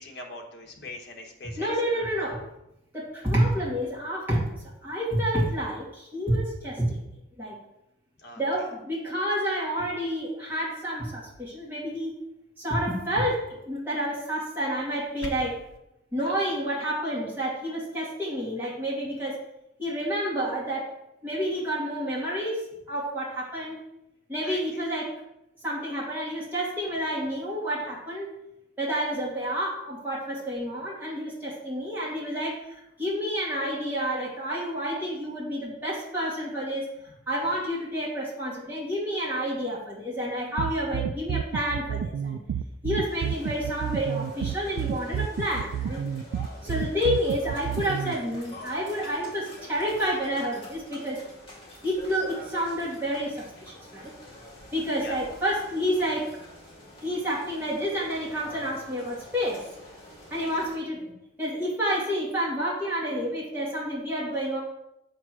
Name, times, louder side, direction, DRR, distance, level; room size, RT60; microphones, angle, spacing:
voice 1, 0.0-2.1 8.2-8.4 16.2-16.5 24.4-24.8 54.9-55.2 60.5-60.6, left 2 dB, 55° left, 1 dB, 1.1 m, -42 dB
voice 2, 1.6-2.4 2.9-7.0 7.4-7.6 8.4-12.1 12.6-15.6 16.1-19.4 19.8-23.8 24.3-25.2 25.6-28.3 28.8-36.9 37.3-42.4 42.8-46.2 46.6-51.2 51.8-54.1 54.7-56.3 57.0-59.7 60.3-61.0 61.4-64.6, equal, 10° right, -7 dB, 2.1 m, -29 dB
sound 1, 14.8-15.8, left 2 dB, 85° left, 0.8 m, -41 dB
sound 2, 40.6-48.1, right 8 dB, 90° right, 0.3 m, -30 dB
sound 3, 43.1-60.8, left 1 dB, 25° left, 2.0 m, -47 dB
7.2 x 3.1 x 5.9 m, 0.85 s
head